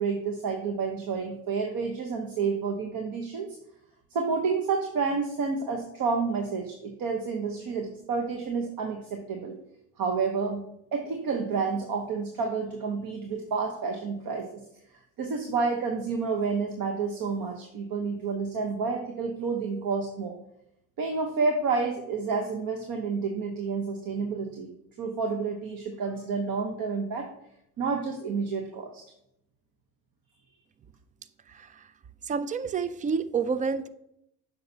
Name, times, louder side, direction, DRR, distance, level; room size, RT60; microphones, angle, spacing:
voice 1, 0.0-3.5 4.1-9.5 10.0-10.6 10.9-14.6 15.2-20.4 21.0-24.7 25.0-27.3 27.8-29.0, right 5 dB, 50° right, 3 dB, 1.0 m, -29 dB
voice 2, 31.5-31.9 32.2-33.9, right 5 dB, 20° right, 14 dB, 0.3 m, -29 dB
7.6 x 5.6 x 2.8 m, 0.78 s
hypercardioid pair, 75°, 44 cm